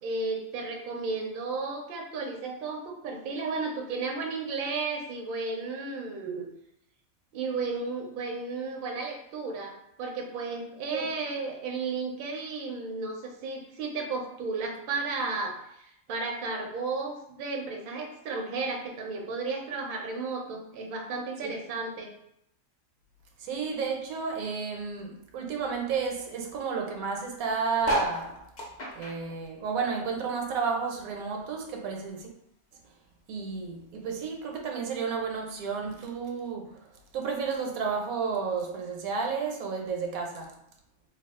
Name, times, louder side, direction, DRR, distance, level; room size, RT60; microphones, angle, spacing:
voice 1, 0.0-6.5 7.3-22.1, right 4 dB, 60° right, 1 dB, 0.6 m, -33 dB
voice 2, 23.4-28.4 29.0-32.3 33.3-36.8 37.1-40.5, right 5 dB, 85° right, 2 dB, 1.1 m, -32 dB
sound 1, 27.8-30.6 30.9-32.4 32.9-33.0 33.2-33.3 33.5-33.9 34.7-34.8, right 1 dB, 45° left, 0.6 m, -34 dB
2.6 x 2.3 x 3.5 m, 0.79 s
omnidirectional pair, 1.5 m